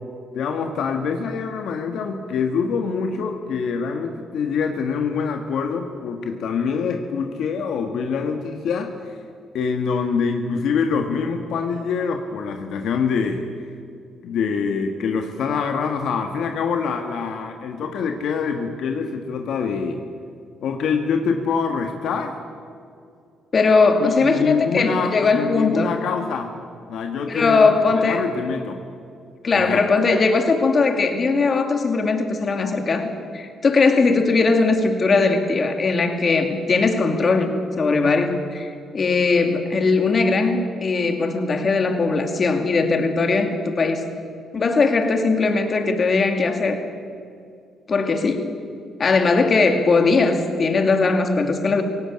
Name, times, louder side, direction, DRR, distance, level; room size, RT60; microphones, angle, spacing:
voice 1, 0.3-9.1 9.5-13.5 14.2-20.0 20.6-22.4 24.0-26.5 26.9-28.8 29.5-29.8, left 5 dB, 75° left, 5 dB, 1.6 m, -25 dB
voice 2, 23.5-25.9 27.3-28.2 29.4-44.0 44.5-46.8 47.9-48.6 49.0-51.8, left 4 dB, 40° left, 6 dB, 2.4 m, -19 dB
17.5 x 17.5 x 8.7 m, 2.4 s
cardioid pair, 90°, 0 cm